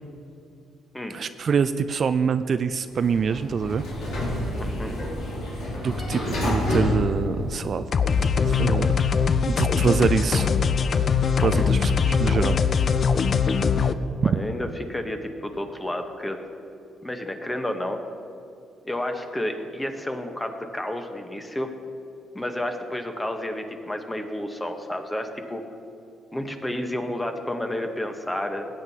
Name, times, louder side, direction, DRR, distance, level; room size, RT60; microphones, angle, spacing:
voice 1, 1.1-3.9 5.8-7.9 8.4-8.9 9.5-10.5 11.4-12.6 14.2-14.4, right 6 dB, 50° right, 11 dB, 0.3 m, -25 dB
Sliding door, 2.9-8.1, left 1 dB, 75° left, 2.6 m, -28 dB
voice 2, 4.6-5.0 11.5-11.7 14.2-16.4 17.0-18.0 18.8-21.7 22.3-25.6 26.3-28.7, left 1 dB, 10° left, 5 dB, 1.0 m, -31 dB
sound 1, 7.9-13.9, left 6 dB, 50° left, 0.4 m, -21 dB
16.0 x 9.1 x 2.8 m, 2.7 s
cardioid pair, 90°, 0 cm